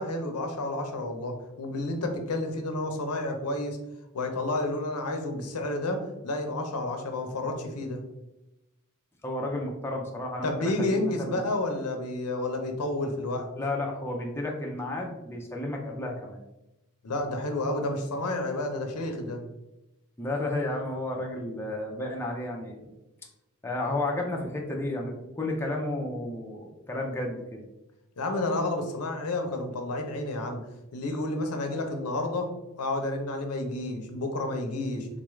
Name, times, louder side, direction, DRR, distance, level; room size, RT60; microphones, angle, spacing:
voice 1, 0.0-3.8 4.1-8.0 10.4-13.5 17.0-19.4 28.2-30.6 30.9-32.5 32.8-35.1, left 2 dB, 90° left, 4 dB, 0.6 m, -30 dB
voice 2, 9.2-11.4 13.6-16.4 20.2-22.9 23.6-27.6, left 2 dB, 10° left, -1 dB, 0.4 m, -32 dB
3.8 x 2.4 x 3.1 m, 0.95 s
head